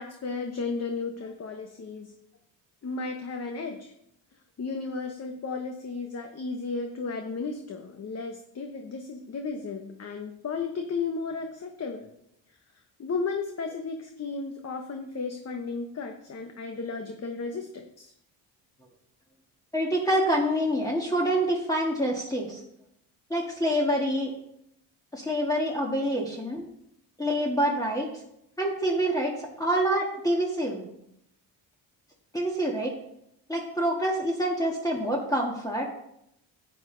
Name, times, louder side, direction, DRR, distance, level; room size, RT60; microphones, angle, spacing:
voice 1, 0.0-2.1 2.8-3.9 4.6-12.1 13.0-18.1, left 4 dB, 35° left, 4 dB, 1.1 m, -34 dB
voice 2, 19.7-22.6 23.3-24.3 25.1-26.7 27.2-28.1 28.6-30.9 32.3-32.9 33.5-35.9, equal, 10° left, -1 dB, 1.7 m, -26 dB
10.5 x 8.6 x 3.9 m, 0.77 s
cardioid pair, 90°, 43 cm